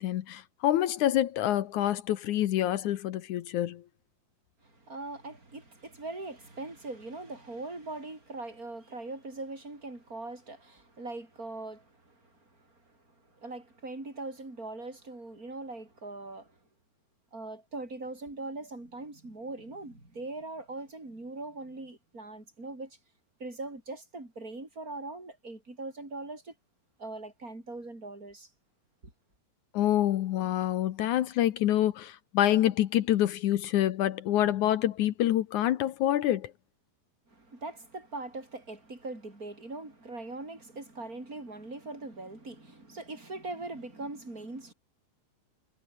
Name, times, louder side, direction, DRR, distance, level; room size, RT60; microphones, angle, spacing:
voice 1, 0.0-3.8 29.7-36.5, left 12 dB, 70° left, 2.1 m, -27 dB
voice 2, 4.6-16.6 17.3-23.0 23.4-26.5 27.0-28.5 37.3-44.7, right 2 dB, 20° right, 8.2 m, -41 dB
omnidirectional pair, 4.3 m